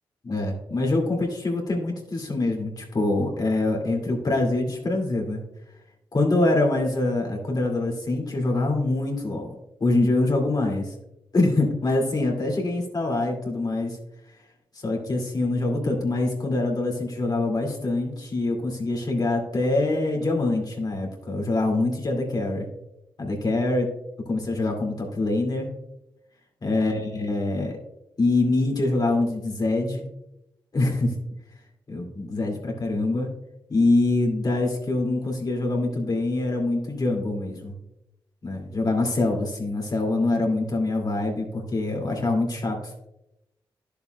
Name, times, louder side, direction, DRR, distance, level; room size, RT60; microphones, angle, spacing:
voice 1, 0.2-5.4 6.1-9.5 9.8-10.9 11.3-14.0 14.8-22.7 23.2-23.9 24.3-25.7 26.6-27.8 28.2-30.1 30.7-31.2 31.9-33.3 33.7-37.7 38.4-42.9, left 2 dB, 45° left, 1 dB, 2.3 m, -24 dB
11.0 x 7.0 x 2.3 m, 0.87 s
supercardioid pair, 45°, 9 cm